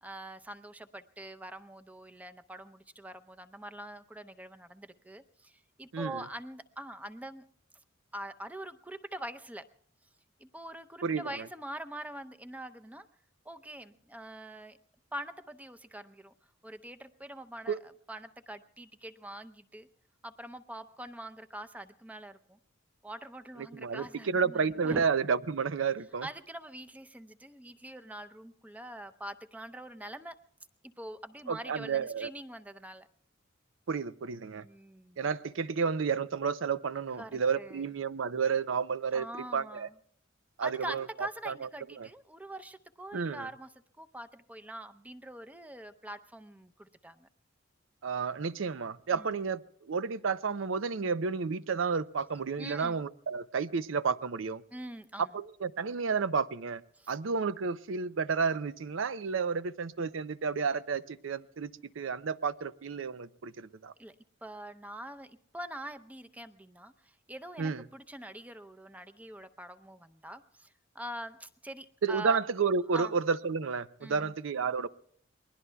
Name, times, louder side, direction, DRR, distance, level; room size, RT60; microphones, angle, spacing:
voice 1, 0.0-7.4 8.1-9.7 10.4-13.1 13.4-14.8 15.1-16.3 16.6-19.9 20.2-22.6 23.0-25.0 26.2-30.4 30.8-33.1 34.5-35.3 37.2-37.9 39.1-39.9 40.6-47.3 49.1-49.4 52.6-53.0 54.7-55.4 56.9-57.2 64.0-64.1 64.4-72.4 72.9-73.1 74.0-74.3, right 1 dB, 10° right, 9 dB, 0.6 m, -44 dB
voice 2, 5.9-6.2 11.0-11.2 17.7-17.8 23.7-26.3 31.5-32.3 33.9-34.6 35.2-39.3 39.5-39.9 40.6-41.5 42.0-42.1 43.1-43.5 48.0-54.6 55.3-56.8 57.1-61.7 62.0-63.9 67.6-67.8 72.0-74.9, right 5 dB, 80° right, 15 dB, 0.5 m, -31 dB
28.5 x 21.0 x 2.3 m, 0.62 s
head